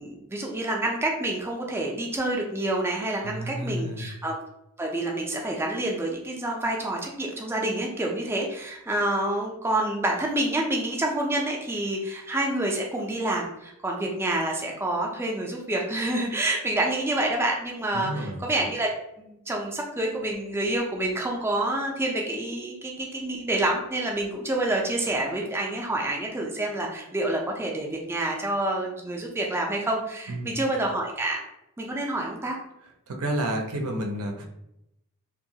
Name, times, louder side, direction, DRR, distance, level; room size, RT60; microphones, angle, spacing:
voice 1, 0.0-4.4 4.8-18.9 19.2-31.4 31.8-32.6, right 1 dB, 10° right, -1 dB, 0.3 m, -28 dB
voice 2, 3.2-4.1 17.9-18.4 30.3-30.5 33.1-34.5, right 1 dB, 80° right, 3 dB, 0.5 m, -30 dB
2.8 x 2.2 x 2.7 m, 0.83 s
head